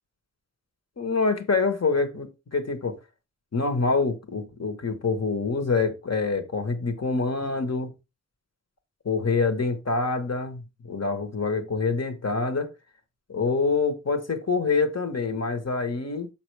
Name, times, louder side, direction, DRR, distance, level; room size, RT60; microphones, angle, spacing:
voice 1, 1.0-3.0 3.5-7.9 9.0-12.7 13.3-16.3, left 4 dB, 60° left, 1.3 m, -26 dB
7.1 x 6.0 x 3.4 m
wide cardioid pair, 70°, 30 cm